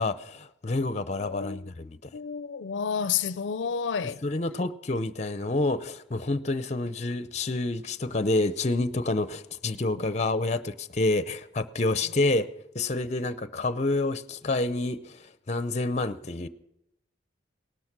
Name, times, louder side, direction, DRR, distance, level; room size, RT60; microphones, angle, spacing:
voice 1, 0.0-2.0 4.2-12.5 12.7-15.0 15.5-16.5, left 2 dB, 35° left, 0.6 m, -28 dB
voice 2, 1.2-1.7 2.1-4.2, left 7 dB, 85° left, 0.5 m, -30 dB
18.5 x 12.5 x 6.0 m
head